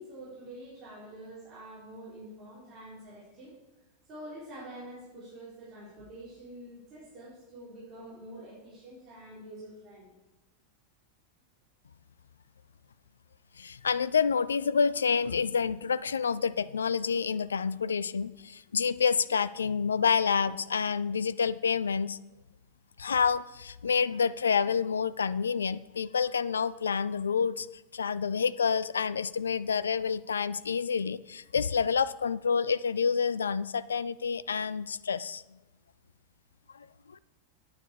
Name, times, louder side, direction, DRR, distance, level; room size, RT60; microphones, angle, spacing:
voice 1, 0.0-3.5 4.1-10.1, right 1 dB, 30° right, -9 dB, 4.2 m, -46 dB
voice 2, 13.6-22.2 23.0-27.7 27.9-35.4 36.7-37.2, left 6 dB, 70° left, 17 dB, 0.3 m, -28 dB
9.6 x 9.0 x 4.9 m, 1.0 s
figure-of-eight pair, 90°, 0 cm